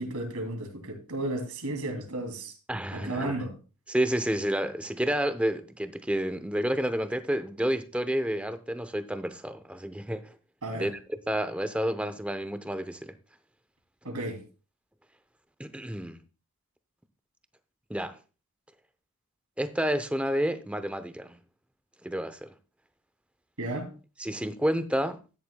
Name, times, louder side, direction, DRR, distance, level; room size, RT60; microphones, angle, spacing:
voice 1, 0.0-2.5 2.9-3.5 10.6-10.9 14.0-14.4 23.6-23.9, right 1 dB, 90° right, 2.8 m, -33 dB
voice 2, 2.7-3.4 3.9-10.3 10.7-13.1 15.6-16.2 17.9-18.2 19.6-21.4 22.0-22.5 24.2-25.2, equal, 5° right, 0.6 m, -30 dB
13.0 x 10.0 x 2.2 m
head